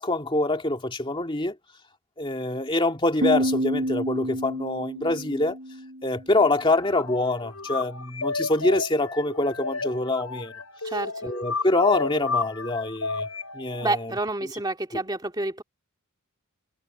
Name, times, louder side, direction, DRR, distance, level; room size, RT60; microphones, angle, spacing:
voice 1, 0.0-1.5 2.2-5.6 6.0-10.5 11.2-13.3 13.5-14.1, left 2 dB, 20° left, 2.2 m, -25 dB
Piano, 3.2-6.6, equal, 55° right, 4.0 m, -29 dB
sound 1, 6.6-13.9, left 4 dB, 85° left, 7.1 m, -32 dB
voice 2, 10.8-11.3 13.8-15.6, right 2 dB, 20° right, 2.4 m, -29 dB
head